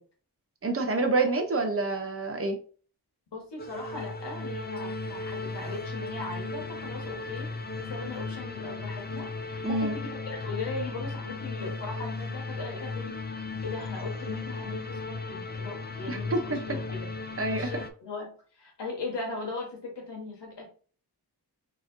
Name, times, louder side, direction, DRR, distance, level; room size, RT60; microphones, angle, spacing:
voice 1, 0.6-2.6 9.6-10.0 16.1-16.6 17.4-17.7, right 3 dB, 35° right, 0.8 m, -27 dB
voice 2, 3.3-20.6, left 3 dB, 85° left, 1.3 m, -39 dB
sound 1, 3.6-17.9, left 3 dB, 25° left, 0.5 m, -36 dB
4.7 x 3.0 x 2.6 m
wide cardioid pair, 70°, 41 cm